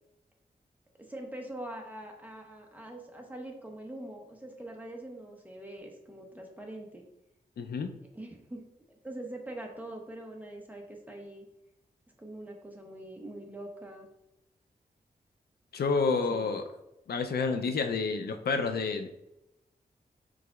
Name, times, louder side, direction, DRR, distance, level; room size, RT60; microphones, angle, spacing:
voice 1, 1.0-7.0 8.1-8.6 9.0-11.4 12.2-14.1 16.3-16.5, right 1 dB, 10° right, 1 dB, 0.8 m, -43 dB
voice 2, 7.6-7.9 15.7-16.6 17.1-19.1, left 4 dB, 90° left, 6 dB, 0.4 m, -29 dB
4.8 x 3.9 x 2.3 m, 0.90 s
wide cardioid pair, 100°, 16 cm